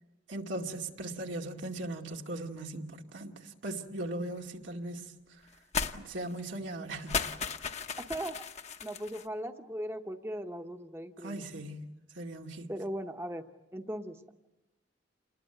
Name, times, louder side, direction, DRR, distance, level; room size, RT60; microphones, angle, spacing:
voice 1, 0.3-5.1 5.9-7.3 11.2-12.7, right 1 dB, 90° right, 2.3 m, -39 dB
sound 1, 5.7-6.0 6.3-6.4 7.0-9.3, left 5 dB, 35° left, 0.9 m, -35 dB
voice 2, 8.1-8.4 8.8-11.4 12.7-13.4 13.7-14.3, equal, 15° right, 1.0 m, -38 dB
28.0 x 21.0 x 8.1 m
head